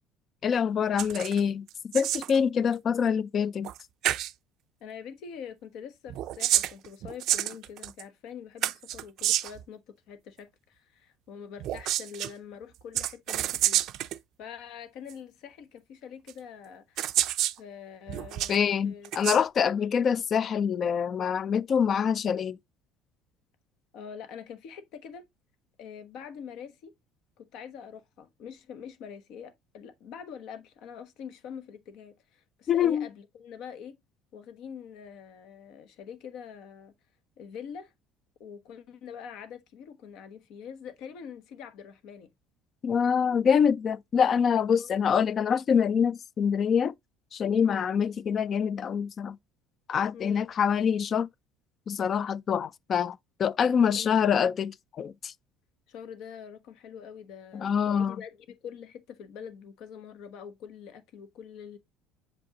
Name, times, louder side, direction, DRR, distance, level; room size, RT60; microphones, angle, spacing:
voice 1, 0.4-3.7 18.5-22.6 32.7-33.1 42.8-46.9 47.3-49.4 49.9-51.3 51.9-55.3 57.5-58.2, left 7 dB, 35° left, 0.4 m, -25 dB
sound 1, 1.0-1.4 1.7-2.4 3.6-3.8 4.0-4.3 6.1-8.0 8.6-9.6 11.6-12.3 12.9-14.2 15.1-15.2 16.3-16.4 17.0-17.6 18.1-18.6 19.0-19.4, right 13 dB, 60° right, 0.4 m, -28 dB
voice 2, 4.8-13.8 14.4-17.0 17.6-18.6 18.8-19.1 23.9-25.2 25.8-26.9 27.4-34.0 34.3-36.9 37.4-37.9 38.4-42.3 44.8-44.9 47.6-47.8 50.1-50.5 53.9-54.3 55.9-61.8, left 7 dB, 65° left, 1.1 m, -44 dB
7.2 x 5.2 x 2.9 m
cardioid pair, 135°, 0 cm